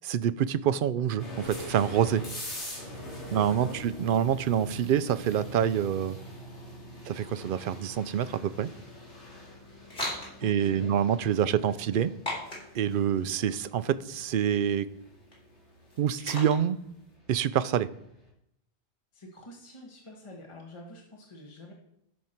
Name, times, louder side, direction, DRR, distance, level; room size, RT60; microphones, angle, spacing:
voice 1, 0.0-2.2 3.3-6.2 7.1-8.7 10.4-12.1 12.7-14.9 16.0-16.8 17.3-17.9, right 9 dB, 60° right, 15 dB, 0.6 m, -26 dB
sound 1, 1.2-18.0, equal, 85° left, 3.2 m, -44 dB
voice 2, 3.3-3.8 10.4-10.9 11.7-11.8 19.1-21.7, left 1 dB, 25° left, -1 dB, 1.4 m, -47 dB
sound 2, 8.5-17.1, left 1 dB, 50° left, 4.2 m, -42 dB
14.5 x 6.5 x 4.4 m, 0.78 s
omnidirectional pair, 1.1 m